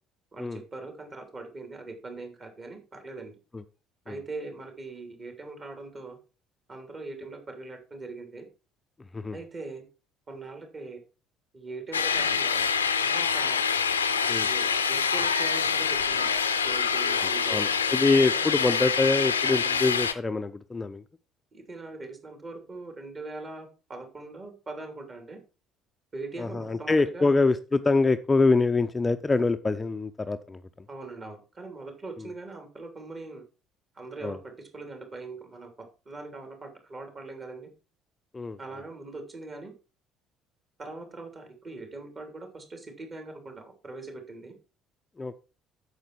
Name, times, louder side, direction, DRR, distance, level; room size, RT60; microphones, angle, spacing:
voice 1, 0.3-3.4 4.0-6.2 6.7-8.5 9.3-9.8 10.3-11.0 11.5-12.7 13.0-13.6 14.3-16.3 16.6-18.5 21.5-25.4 26.1-27.3 30.9-33.4 33.9-37.7 38.6-39.7 40.8-44.6, right 3 dB, 35° right, 5 dB, 3.1 m, -41 dB
sound 1, 11.9-20.1, left 6 dB, 80° left, 0.7 m, -26 dB
voice 2, 17.2-21.0 26.4-30.9 32.2-32.3 34.2-34.4 38.3-38.6 45.2-45.4, left 3 dB, 20° left, 9 dB, 0.6 m, -25 dB
9.0 x 6.8 x 4.5 m, 0.32 s
figure-of-eight pair, 55°, 0 cm